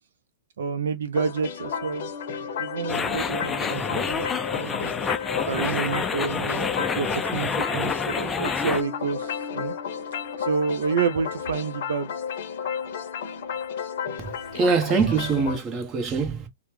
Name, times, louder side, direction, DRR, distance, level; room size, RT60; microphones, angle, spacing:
voice 1, 0.6-2.1 2.6-4.3 4.6-4.9 5.3-9.7 10.4-12.1, right 5 dB, 70° right, 0.4 m, -29 dB
sound 1, 1.1-15.6, left 7 dB, 60° left, 0.6 m, -33 dB
sound 2, 2.9-8.8, left 5 dB, 15° left, 0.3 m, -28 dB
voice 2, 14.2-16.5, right 5 dB, 25° right, 0.9 m, -24 dB
2.9 x 2.0 x 3.2 m
hypercardioid pair, 115°, 0 cm